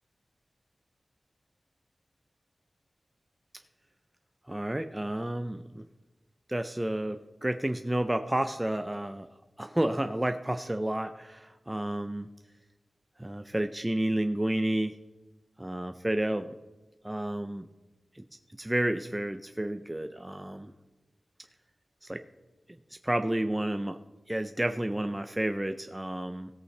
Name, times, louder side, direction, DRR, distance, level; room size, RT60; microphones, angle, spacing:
voice 1, 4.5-5.8 6.5-9.3 9.6-12.3 13.2-15.0 15.6-16.5 17.0-17.6 18.1-18.2 18.6-20.7 22.0-22.2 23.0-24.0 24.3-26.5, right 1 dB, 15° right, 8 dB, 0.5 m, -31 dB
16.5 x 8.5 x 3.3 m, 1.1 s
wide cardioid pair, 95°, 0 cm